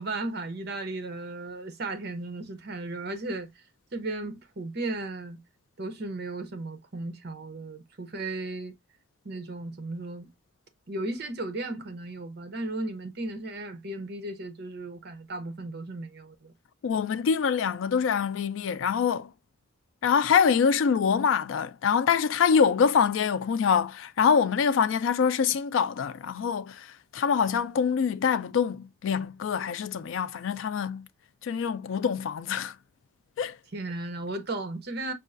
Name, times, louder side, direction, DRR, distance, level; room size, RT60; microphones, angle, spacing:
voice 1, 0.0-3.5 3.9-5.4 5.8-8.7 9.2-10.3 10.9-16.5 33.7-35.1, right 2 dB, 50° right, 0.7 m, -35 dB
voice 2, 16.8-19.3 20.0-31.1 31.4-32.8 33.4-33.6, left 6 dB, 70° left, 0.3 m, -25 dB
5.3 x 2.4 x 2.4 m
head